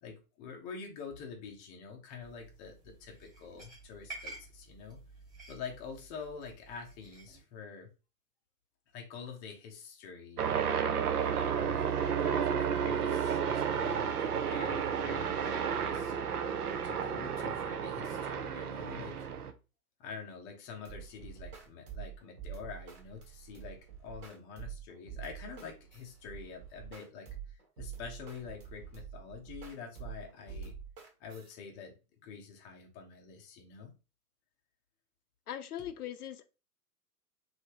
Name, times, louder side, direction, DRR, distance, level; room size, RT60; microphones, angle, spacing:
voice 1, 0.0-5.0 5.5-7.9 8.9-10.7 11.2-16.3 16.8-19.3 20.0-30.8 31.2-31.9 32.2-33.9, left 6 dB, 20° left, 0.5 m, -46 dB
sound 1, 2.2-7.4, right 2 dB, 10° right, 1.5 m, -51 dB
sound 2, 10.4-19.5, right 7 dB, 75° right, 0.6 m, -32 dB
sound 3, 20.8-31.5, right 9 dB, 40° right, 1.3 m, -46 dB
voice 2, 35.5-36.5, left 10 dB, 70° left, 0.6 m, -40 dB
3.2 x 2.7 x 2.9 m
figure-of-eight pair, 110°, 46 cm